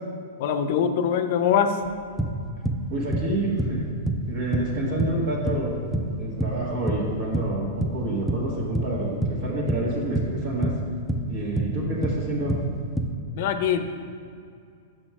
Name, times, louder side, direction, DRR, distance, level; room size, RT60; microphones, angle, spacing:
voice 1, 0.4-1.8 13.3-13.9, left 8 dB, 60° left, 9 dB, 0.5 m, -23 dB
sound 1, 1.9-2.0 2.2-2.9 3.1-3.8 4.1-4.3 4.5-4.7 5.0-5.7 5.9-7.1 7.3-8.0 8.3-8.9 9.2-9.4 9.7-10.4 10.6-11.3 11.6-11.8 12.0-12.2 12.5-13.1, right 1 dB, 5° left, 0.5 m, -26 dB
voice 2, 2.9-3.9 4.3-5.7 6.2-10.7 11.3-12.5, right 1 dB, 55° right, -5 dB, 1.6 m, -28 dB
6.2 x 4.4 x 6.0 m, 2.4 s
hypercardioid pair, 125°, 0 cm